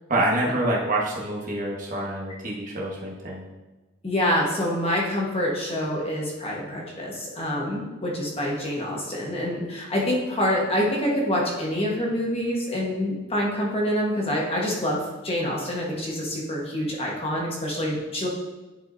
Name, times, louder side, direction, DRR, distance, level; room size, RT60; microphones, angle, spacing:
voice 1, 0.1-3.4, right 1 dB, 40° right, -4 dB, 1.3 m, -26 dB
voice 2, 4.0-18.3, equal, 30° left, -3 dB, 1.3 m, -26 dB
10.5 x 4.8 x 2.7 m, 1.2 s
head